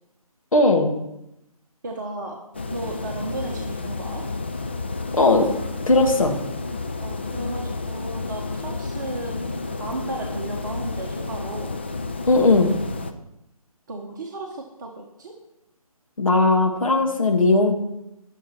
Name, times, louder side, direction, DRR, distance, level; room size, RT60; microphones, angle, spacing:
voice 1, 0.5-0.9 5.1-5.5 5.9-6.4 12.3-12.7 16.2-17.7, left 2 dB, 60° left, 3 dB, 2.3 m, -18 dB
voice 2, 1.8-2.4 2.7-4.2 7.0-9.4 9.8-11.7 13.9-15.3, right 2 dB, 30° right, -1 dB, 1.5 m, -34 dB
sound 1, 2.5-13.1, left 3 dB, 20° left, 0.4 m, -31 dB
21.0 x 7.2 x 4.6 m, 0.87 s
figure-of-eight pair, 150°, 19 cm